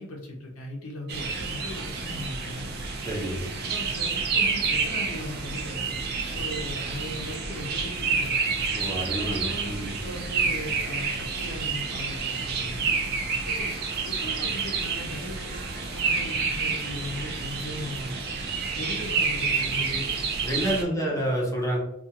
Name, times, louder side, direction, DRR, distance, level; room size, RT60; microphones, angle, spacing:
voice 1, 0.0-2.7 3.3-8.5 9.2-12.9 13.5-13.7 14.0-15.6 15.9-18.2 18.7-20.1 20.6-21.3, left 1 dB, 90° left, -1 dB, 0.6 m, -38 dB
sound 1, 1.1-20.8, right 4 dB, 50° right, 0.4 m, -29 dB
voice 2, 3.0-3.4 8.7-9.9 20.4-21.8, right 1 dB, 15° left, -4 dB, 0.8 m, -28 dB
2.4 x 2.3 x 2.8 m, 0.83 s
head